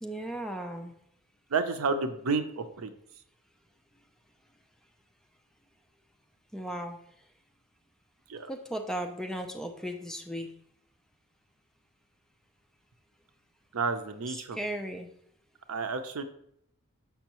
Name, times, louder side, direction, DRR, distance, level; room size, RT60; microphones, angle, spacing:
voice 1, 0.0-0.9 6.5-7.0 8.5-10.5 14.3-15.1, right 1 dB, ahead, 4 dB, 0.5 m, -36 dB
voice 2, 1.5-2.9 8.3-8.5 13.7-14.6 15.7-16.2, right 4 dB, 70° right, 9 dB, 0.6 m, -30 dB
7.0 x 5.5 x 2.9 m, 0.69 s
head